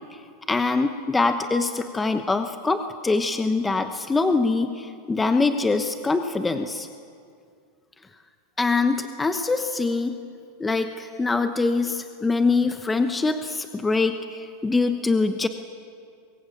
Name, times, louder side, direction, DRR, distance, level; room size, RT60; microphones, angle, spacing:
voice 1, 0.5-6.9 8.6-10.2 10.6-15.5, left 3 dB, 10° left, 8 dB, 1.0 m, -24 dB
25.0 x 21.5 x 8.5 m, 2.3 s
supercardioid pair, 135°, 0 cm